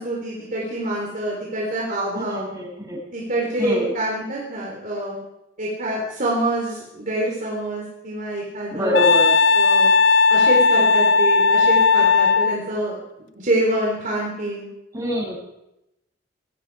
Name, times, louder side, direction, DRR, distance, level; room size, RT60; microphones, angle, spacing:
voice 1, 0.0-2.5 3.1-5.2 5.6-9.0 9.5-9.9 10.3-13.0 13.4-14.7, right 1 dB, 45° right, -3 dB, 3.8 m, -26 dB
voice 2, 2.1-3.0 3.6-3.9 8.7-9.4 14.9-15.4, left 1 dB, 20° right, -3 dB, 7.2 m, -25 dB
Wind instrument woodwind instrument, 8.9-12.6, left 4 dB, 75° left, 0.7 m, -16 dB
20.0 x 15.0 x 4.8 m, 0.89 s
head